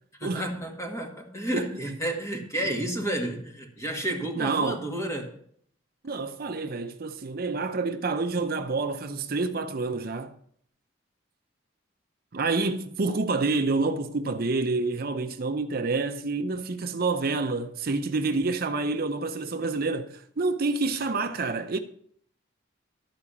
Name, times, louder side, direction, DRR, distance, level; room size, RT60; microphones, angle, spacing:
voice 1, 0.2-5.3, right 1 dB, 15° left, 1.9 m, -31 dB
voice 2, 4.4-4.8 6.0-10.4 12.3-21.8, right 3 dB, 50° right, 0.6 m, -28 dB
13.0 x 4.8 x 8.4 m
head